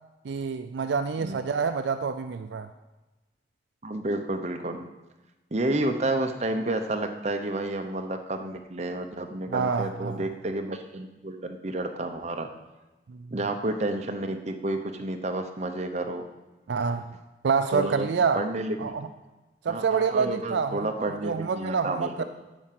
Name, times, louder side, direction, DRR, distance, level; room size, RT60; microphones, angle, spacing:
voice 1, 0.2-2.7 9.5-10.3 13.1-13.3 16.7-17.2 17.4-18.4 18.8-19.1 19.6-22.2, right 5 dB, 75° right, 10 dB, 0.4 m, -27 dB
voice 2, 3.8-4.9 5.5-12.5 13.3-16.2 17.7-18.1 18.3-18.9 19.7-22.2, right 2 dB, 35° right, 5 dB, 0.8 m, -30 dB
10.0 x 5.0 x 7.6 m, 1.1 s
head